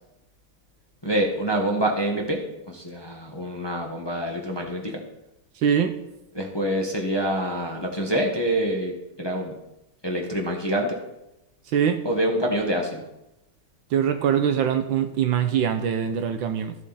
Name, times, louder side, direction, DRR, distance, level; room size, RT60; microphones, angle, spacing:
voice 1, 1.0-5.0 6.3-8.9 9.2-9.5 10.0-11.0 12.0-13.0, right 1 dB, 15° left, 0 dB, 1.2 m, -26 dB
voice 2, 5.6-5.9 11.7-12.0 13.9-16.7, right 8 dB, 75° right, 8 dB, 1.4 m, -23 dB
14.0 x 7.4 x 4.2 m, 0.89 s
omnidirectional pair, 2.3 m